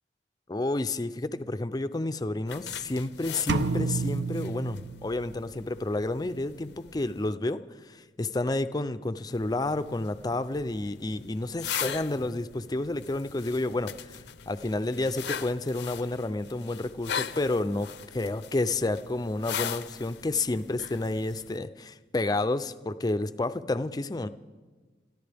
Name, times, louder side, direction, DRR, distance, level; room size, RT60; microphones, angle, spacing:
voice 1, 0.5-7.6 7.8-14.2 14.5-17.9 18.1-24.3, left 2 dB, 20° left, 11 dB, 0.4 m, -30 dB
sound 1, 2.5-7.3 9.3-21.6, left 8 dB, 70° left, 0.6 m, -40 dB
sound 2, 3.5-5.5, right 4 dB, 75° right, 0.6 m, -30 dB
28.5 x 13.5 x 3.5 m, 1.3 s
head